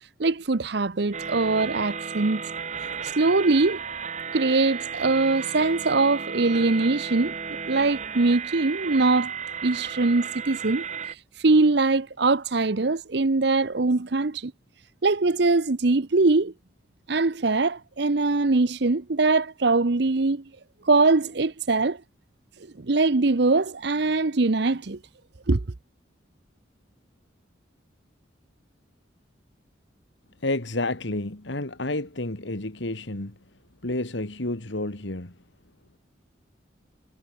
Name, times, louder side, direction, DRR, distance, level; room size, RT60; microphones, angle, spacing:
voice 1, 0.2-2.4 3.1-3.8 4.3-7.3 7.7-9.3 9.6-10.8 11.4-14.5 15.0-16.5 17.1-20.4 20.9-22.0 22.8-25.0 25.5-25.6, right 3 dB, 55° right, 0.8 m, -22 dB
sound 1, 1.1-11.2, right 6 dB, 35° right, 1.7 m, -34 dB
voice 2, 30.4-33.4 33.8-35.4, left 2 dB, 65° left, 2.0 m, -30 dB
head